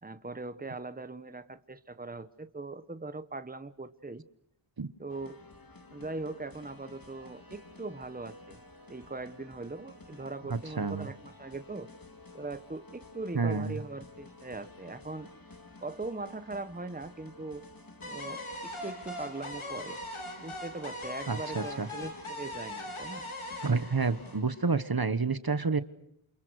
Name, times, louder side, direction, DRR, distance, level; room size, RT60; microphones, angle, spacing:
voice 1, 0.0-4.2 5.0-5.4 5.9-8.6 8.9-11.9 12.3-15.3 15.8-17.6 18.0-20.0 20.4-23.3, right 3 dB, 20° right, 12 dB, 1.2 m, -40 dB
sound 1, 5.1-24.4, left 3 dB, 45° left, 2.6 m, -52 dB
voice 2, 10.5-11.1 13.3-13.8 21.3-21.9 23.6-25.8, right 4 dB, 45° right, 13 dB, 1.3 m, -29 dB
sound 2, 18.0-25.0, left 1 dB, 80° left, 4.1 m, -41 dB
28.5 x 28.0 x 6.5 m, 0.77 s
wide cardioid pair, 45°, 49 cm